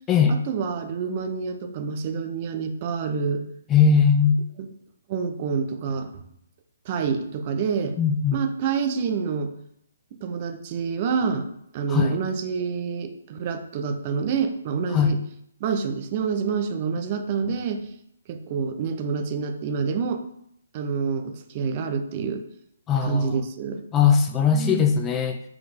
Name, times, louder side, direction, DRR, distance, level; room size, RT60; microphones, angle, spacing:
voice 1, 0.3-3.4 4.6-4.7 5.1-6.2 6.8-7.9 8.3-9.5 10.2-11.5 11.7-15.2 15.6-17.9 18.3-20.2 20.7-22.4 23.0-23.8 24.5-24.9, right 5 dB, 35° right, 6 dB, 0.9 m, -27 dB
voice 2, 3.7-4.4 8.0-8.4 11.9-12.2 14.9-15.1 22.9-23.4 23.9-25.4, left 6 dB, 15° left, 6 dB, 0.5 m, -20 dB
7.4 x 4.9 x 3.7 m, 0.73 s
figure-of-eight pair, 140°, 0 cm